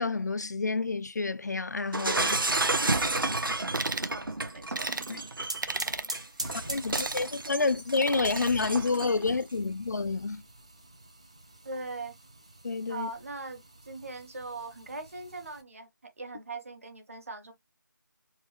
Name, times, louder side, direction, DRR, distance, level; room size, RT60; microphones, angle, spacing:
voice 1, 0.0-2.4 5.1-5.2 6.7-10.4 12.6-13.1, left 3 dB, 55° left, 0.3 m, -29 dB
Shatter, 1.9-9.3, right 2 dB, 85° right, 1.5 m, -31 dB
voice 2, 3.3-4.9 11.6-12.1 12.9-17.5, right 3 dB, 40° right, 1.8 m, -41 dB
sound 1, 3.7-4.1 4.7-5.1 5.6-6.1 6.8-7.3 8.0-8.5, right 3 dB, 65° right, 1.0 m, -35 dB
sound 2, 5.0-15.6, right 2 dB, 20° right, 0.4 m, -45 dB
4.6 x 3.0 x 3.4 m
figure-of-eight pair, 175°, 11 cm